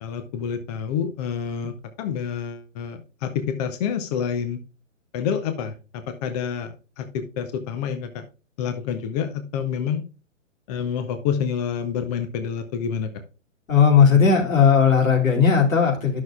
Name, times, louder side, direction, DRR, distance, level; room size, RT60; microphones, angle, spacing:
voice 1, 0.0-4.6 5.1-8.2 8.6-10.0 10.7-13.2, left 7 dB, 30° left, 7 dB, 0.7 m, -28 dB
voice 2, 13.7-16.2, left 6 dB, 85° left, 1 dB, 2.6 m, -17 dB
11.5 x 6.3 x 2.3 m, 0.33 s
hypercardioid pair, 140°, 39 cm